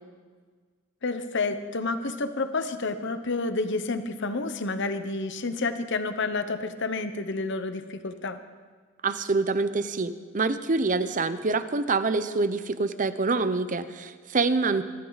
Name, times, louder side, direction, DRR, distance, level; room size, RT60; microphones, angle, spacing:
voice 1, 1.0-8.4, left 3 dB, 60° left, 9 dB, 1.0 m, -29 dB
voice 2, 9.0-14.8, right 3 dB, 40° right, 12 dB, 0.7 m, -26 dB
23.0 x 14.5 x 4.1 m, 1.5 s
head